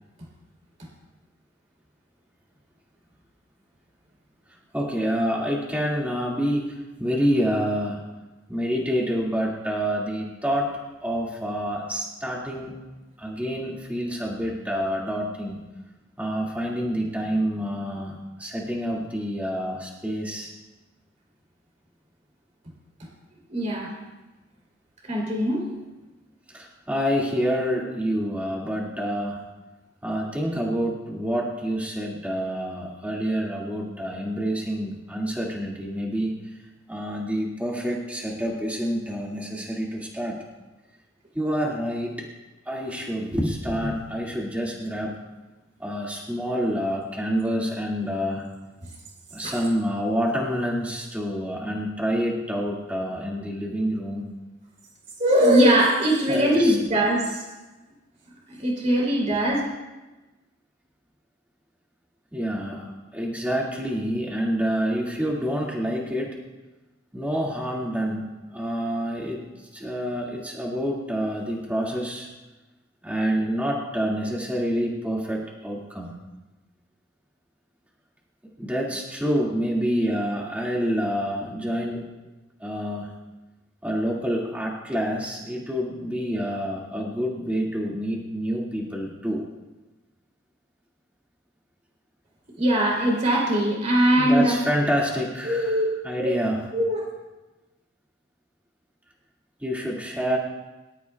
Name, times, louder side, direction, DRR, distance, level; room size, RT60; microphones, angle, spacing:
voice 1, 4.7-8.0 8.5-12.8 13.2-15.6 16.2-20.5 26.5-29.4 30.0-36.4 36.9-40.4 41.3-42.3 42.7-45.2 45.8-48.4 49.3-54.2 56.3-56.8 62.3-66.4 67.1-69.4 69.7-72.3 73.0-76.2 78.6-82.0 82.6-83.1 83.8-89.4 94.2-96.6 99.6-100.4, equal, 10° right, -4 dB, 2.1 m, -27 dB
voice 2, 23.5-23.9 25.0-25.6 48.8-48.9 49.4-49.5 55.2-57.4 58.5-59.6 92.6-94.5 95.5-95.9 96.2-96.4 96.7-97.1, equal, 35° right, -2 dB, 3.3 m, -21 dB
24.0 x 12.5 x 2.3 m, 1.1 s
head